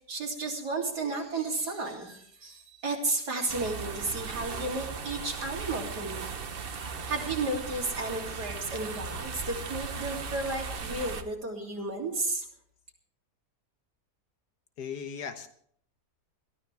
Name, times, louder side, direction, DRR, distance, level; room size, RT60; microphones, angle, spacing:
voice 1, 0.1-6.4 7.0-12.5, right 3 dB, 70° right, -1 dB, 3.8 m, -33 dB
sound 1, 3.5-11.2, right 5 dB, 40° right, 1.0 m, -37 dB
voice 2, 14.8-15.5, left 7 dB, 75° left, 9 dB, 1.6 m, -37 dB
21.5 x 13.0 x 3.5 m, 0.62 s
omnidirectional pair, 1.8 m